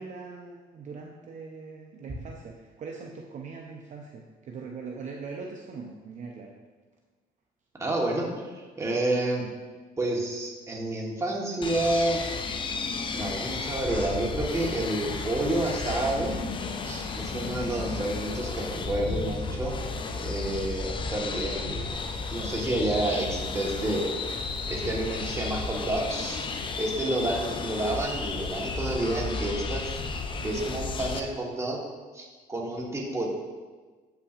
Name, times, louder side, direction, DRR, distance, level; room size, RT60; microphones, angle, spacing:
voice 1, 0.0-6.6 30.3-30.6, right 4 dB, 45° right, 0 dB, 0.6 m, -41 dB
voice 2, 7.8-8.2 8.5-9.4 10.0-12.2 13.1-16.3 16.8-19.8 20.2-21.9 22.3-24.1 24.7-26.4 26.8-29.9 30.4-31.8 32.1-33.3, right 1 dB, 15° right, -2 dB, 1.3 m, -29 dB
sound 1, 11.6-31.2, left 4 dB, 30° left, 0.5 m, -33 dB
7.8 x 5.7 x 2.5 m, 1.4 s
cardioid pair, 110°, 17 cm